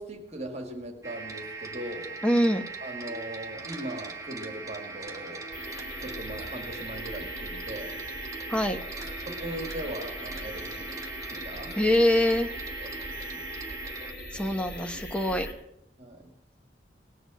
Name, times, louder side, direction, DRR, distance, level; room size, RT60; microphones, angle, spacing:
voice 1, 0.0-2.2 2.8-5.5 6.0-8.0 9.3-11.0 11.3-11.7 12.8-13.5 16.0-16.3, right 1 dB, 40° right, 5 dB, 2.1 m, -39 dB
sound 1, 1.0-14.1, right 4 dB, 20° right, 1.8 m, -40 dB
voice 2, 2.2-2.6 8.5-8.8 11.7-12.5 14.3-15.5, left 1 dB, 5° left, 6 dB, 1.0 m, -24 dB
sound 2, 5.5-15.5, left 1 dB, 65° left, 4.0 m, -41 dB
19.0 x 8.0 x 7.7 m, 0.81 s
head